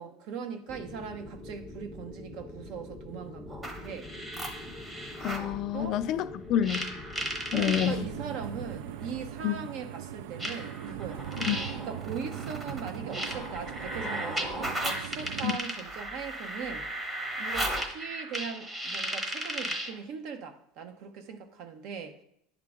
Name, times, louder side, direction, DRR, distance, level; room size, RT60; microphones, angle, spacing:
voice 1, 0.0-4.1 5.7-6.0 7.5-11.2 11.8-16.9 17.4-22.2, right 6 dB, 60° right, 0.8 m, -40 dB
sound 1, 0.7-8.3, left 2 dB, 5° left, 0.6 m, -45 dB
sound 2, 3.5-5.5 6.6-7.9 9.0-9.1 10.4-20.0, right 1 dB, 15° right, 1.0 m, -35 dB
voice 2, 5.2-6.9 7.5-8.0 9.4-9.5 11.5-11.6 15.4-15.5, left 11 dB, 50° left, 0.3 m, -28 dB
sound 3, 7.7-15.6, right 10 dB, 80° right, 0.3 m, -40 dB
10.5 x 3.7 x 3.5 m
supercardioid pair, 130°, 0 cm